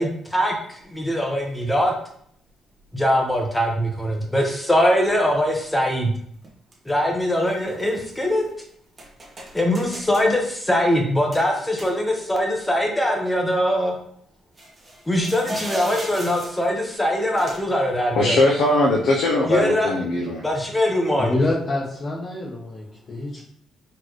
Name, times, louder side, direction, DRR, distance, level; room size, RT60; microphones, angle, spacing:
voice 1, 0.0-1.9 2.9-6.1 6.9-8.4 9.5-13.9 15.1-18.4 19.4-19.9 20.4-21.3, equal, 10° left, 1 dB, 0.9 m, -22 dB
sound 1, 0.8-0.9 1.9-2.0 2.9-3.2 6.4-6.9 7.3-8.5 9.0-10.3 11.3-12.4 12.7-12.8 14.6-16.7 17.4-17.8, right 1 dB, 30° right, 1.2 m, -37 dB
voice 2, 18.1-20.4, left 2 dB, 80° left, -3 dB, 0.7 m, -20 dB
voice 3, 21.2-23.4, left 2 dB, 40° left, -5 dB, 1.1 m, -26 dB
4.3 x 3.2 x 3.0 m, 0.65 s
cardioid pair, 90°, 0 cm